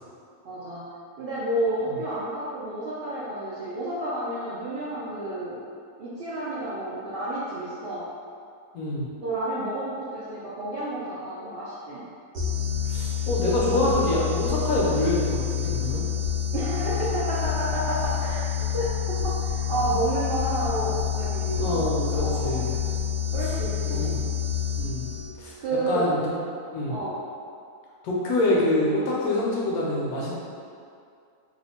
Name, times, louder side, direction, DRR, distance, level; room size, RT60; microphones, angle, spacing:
voice 1, 0.4-0.9 1.2-5.6 6.0-8.1 9.2-12.1 16.5-18.9 19.2-21.8 22.1-22.6 23.3-24.2 25.6-26.1 26.9-27.2, right 1 dB, 80° right, -10 dB, 0.5 m, -30 dB
voice 2, 8.7-9.1 12.9-16.0 21.6-22.8 23.8-24.2 24.8-25.1 25.4-25.5 25.9-26.2 26.7-27.0 28.0-30.3, left 1 dB, 75° left, -5 dB, 1.0 m, -25 dB
sound 1, 12.4-25.5, left 8 dB, 60° right, 1.0 m, -28 dB
2.9 x 2.1 x 4.1 m, 2.4 s
omnidirectional pair, 1.7 m